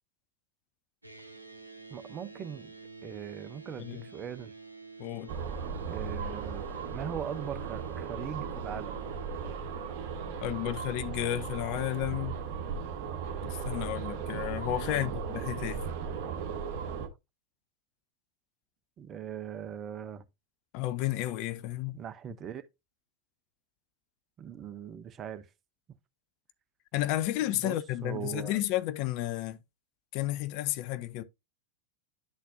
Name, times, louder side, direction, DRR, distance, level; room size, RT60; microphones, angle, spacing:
sound 1, 1.0-11.1, right 4 dB, 85° right, 0.7 m, -49 dB
voice 1, 1.9-2.7 3.0-4.5 5.9-9.0 14.9-15.2 19.0-20.2 21.9-22.6 24.4-25.5 27.5-27.7 28.0-28.6, right 9 dB, 25° right, 0.6 m, -40 dB
voice 2, 5.0-5.3 10.4-12.4 13.4-15.8 20.7-22.0 26.9-29.6 30.1-31.2, left 15 dB, 45° left, 0.5 m, -32 dB
sound 2, 5.3-17.1, right 6 dB, 45° right, 1.1 m, -37 dB
11.0 x 4.1 x 2.6 m
figure-of-eight pair, 90°, 0 cm